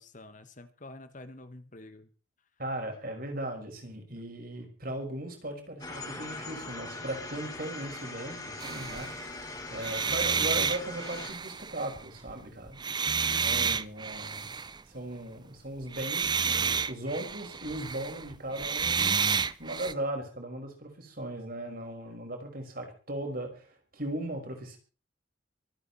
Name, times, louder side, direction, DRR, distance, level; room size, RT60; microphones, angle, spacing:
voice 1, 0.0-2.1, left 2 dB, 40° left, 10 dB, 1.6 m, -48 dB
voice 2, 2.6-9.4 9.7-12.8 13.4-14.6 14.9-19.2 19.6-24.8, right 1 dB, 50° right, 3 dB, 5.6 m, -38 dB
sound 1, 5.8-11.3, left 2 dB, 20° left, 4.4 m, -41 dB
sound 2, 8.6-9.2 9.7-12.3 12.7-14.8 15.8-19.9, right 6 dB, 25° right, 0.6 m, -30 dB
24.5 x 9.4 x 4.3 m, 0.36 s
head